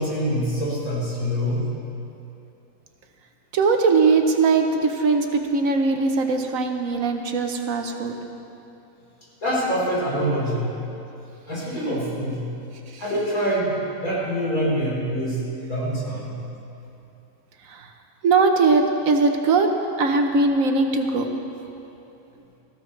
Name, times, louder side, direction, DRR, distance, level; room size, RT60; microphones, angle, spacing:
voice 1, 0.0-1.6 9.4-10.8 11.5-12.5 13.0-16.4, equal, 75° left, -7 dB, 4.6 m, -25 dB
voice 2, 3.5-8.1 12.9-13.0 17.7-17.9 18.2-19.7 20.0-21.2, right 4 dB, 70° right, 4 dB, 1.3 m, -20 dB
18.5 x 14.5 x 3.3 m, 2.8 s
omnidirectional pair, 1.5 m